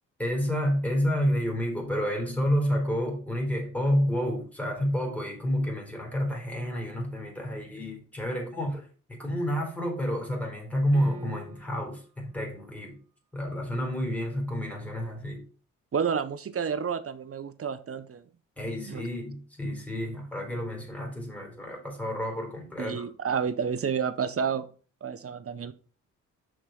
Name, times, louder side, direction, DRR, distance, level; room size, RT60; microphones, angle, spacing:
voice 1, 0.2-13.0 13.3-15.4 18.6-23.1, equal, 5° left, 3.9 m, -29 dB
sound 1, 10.9-12.0, right 4 dB, 85° right, 1.1 m, -45 dB
voice 2, 15.9-18.2 18.9-19.0 22.8-24.7 25.0-25.7, right 6 dB, 40° right, 1.0 m, -30 dB
6.0 x 4.8 x 5.8 m
hypercardioid pair, 50°, 35 cm